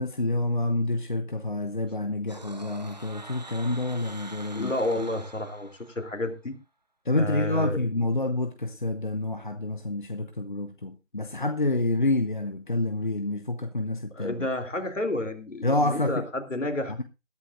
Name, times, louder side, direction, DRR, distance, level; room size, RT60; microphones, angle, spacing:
voice 1, 0.0-4.7 7.1-14.4 15.6-16.2, left 2 dB, 35° left, 0.8 m, -28 dB
sound 1, 2.3-6.3, right 2 dB, 30° right, 1.1 m, -45 dB
voice 2, 4.5-5.7 5.9-6.6 7.1-7.8 14.1-16.9, left 1 dB, 65° left, 3.2 m, -30 dB
21.0 x 11.0 x 2.5 m
figure-of-eight pair, 165°, 40 cm